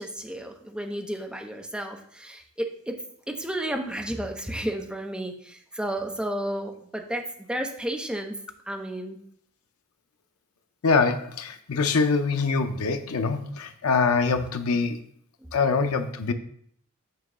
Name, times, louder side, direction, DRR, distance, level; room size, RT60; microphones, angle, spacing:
voice 1, 0.0-3.0 3.3-8.3 8.7-9.2 15.4-15.5, right 1 dB, 5° right, 3 dB, 0.7 m, -32 dB
voice 2, 10.8-15.0 15.5-16.3, left 4 dB, 80° left, 8 dB, 0.6 m, -24 dB
7.4 x 3.0 x 6.1 m, 0.65 s
head